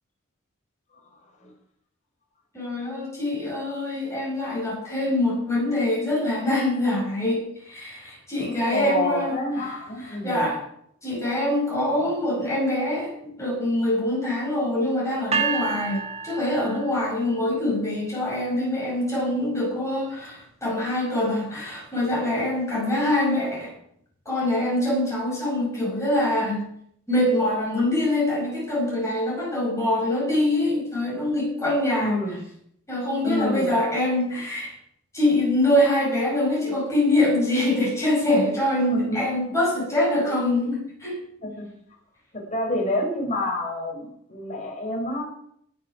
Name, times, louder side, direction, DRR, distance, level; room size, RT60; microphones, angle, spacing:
voice 1, 2.5-9.4 10.0-10.6 11.0-23.7 24.3-26.6 27.1-32.2 32.9-34.7 35.1-41.1, left 1 dB, 15° left, -4 dB, 5.8 m, -24 dB
voice 2, 8.7-10.6 31.9-32.4 33.2-33.7 38.9-39.5 40.2-40.3 41.4-41.7 42.3-45.4, left 1 dB, 35° left, 0 dB, 4.4 m, -28 dB
sound 1, 15.3-17.4, right 5 dB, 30° right, 1.4 m, -29 dB
19.5 x 7.7 x 5.9 m, 0.69 s
head